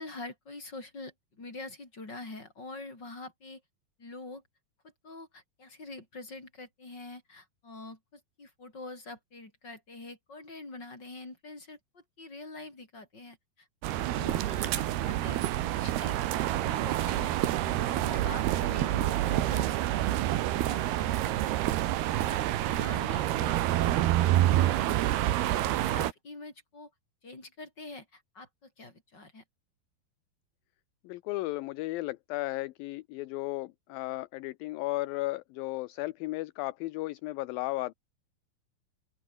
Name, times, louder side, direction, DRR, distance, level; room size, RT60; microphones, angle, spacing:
voice 1, 0.0-3.6 4.0-4.4 5.0-15.4 15.7-16.2 16.5-17.4 17.8-20.0 20.6-21.7 22.2-25.0 25.5-26.9 27.2-29.4, left 2 dB, 25° left, 7.3 m, -45 dB
sound 1, 13.8-26.1, right 14 dB, 85° right, 3.3 m, -28 dB
voice 2, 31.0-37.9, left 19 dB, 75° left, 2.4 m, -35 dB
open air
omnidirectional pair, 4.4 m